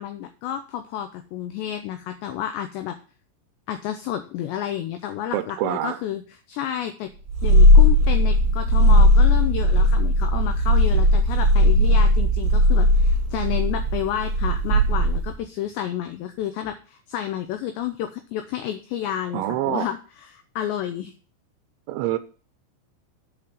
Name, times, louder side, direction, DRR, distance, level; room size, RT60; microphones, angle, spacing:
voice 1, 0.0-3.0 3.7-7.1 7.4-21.1, left 11 dB, 85° left, 2.5 m, -30 dB
voice 2, 5.3-6.0 19.3-19.9 21.9-22.2, right 13 dB, 80° right, 2.8 m, -25 dB
Purr, 7.3-15.4, left 1 dB, 45° right, 2.0 m, -17 dB
7.8 x 5.2 x 7.3 m
omnidirectional pair, 5.9 m